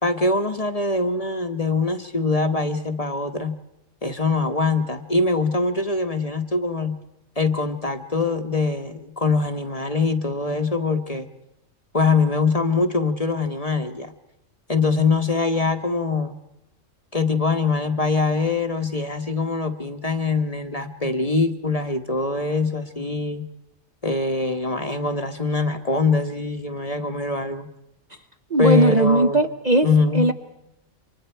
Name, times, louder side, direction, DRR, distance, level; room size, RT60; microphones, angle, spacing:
voice 1, 0.0-3.6 4.0-7.0 7.4-11.3 11.9-14.1 14.7-16.4 17.1-23.5 24.0-27.7 28.6-29.4 29.8-30.3, left 3 dB, 30° left, 7 dB, 1.2 m, -23 dB
voice 2, 28.5-29.9 30.1-30.3, right 1 dB, 35° right, 6 dB, 0.9 m, -18 dB
28.5 x 25.0 x 4.5 m, 0.90 s
omnidirectional pair, 1.4 m